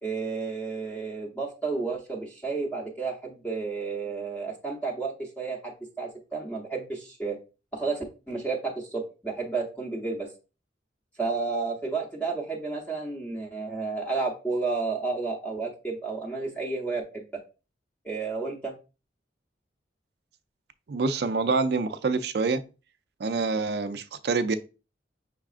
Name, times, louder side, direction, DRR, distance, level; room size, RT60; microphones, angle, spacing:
voice 1, 0.0-7.4 7.7-10.3 11.2-17.2 18.0-18.7, right 4 dB, 10° left, 0.7 m, -31 dB
voice 2, 20.9-22.6 23.2-24.6, right 4 dB, 60° right, 0.4 m, -26 dB
5.8 x 3.5 x 2.4 m
head